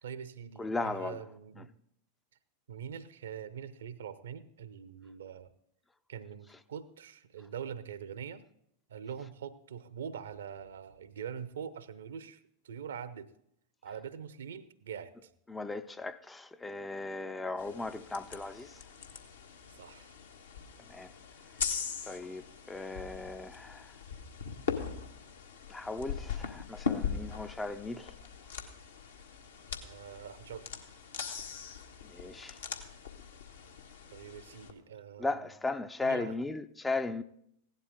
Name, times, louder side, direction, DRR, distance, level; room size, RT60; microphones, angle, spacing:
voice 1, 0.0-1.7 2.7-5.5 6.1-8.4 8.9-12.4 12.6-13.3 13.8-15.3 19.8-20.1 29.8-30.7 34.1-35.5 36.0-36.4, right 8 dB, 65° right, 0.7 m, -43 dB
voice 2, 0.6-1.2 15.5-18.8 20.9-21.1 22.1-23.9 25.7-28.1 32.1-32.6 35.2-37.2, left 3 dB, 10° left, 0.5 m, -37 dB
sound 1, 17.6-34.7, left 6 dB, 70° left, 1.4 m, -40 dB
16.5 x 11.5 x 3.7 m
figure-of-eight pair, 90°, 0 cm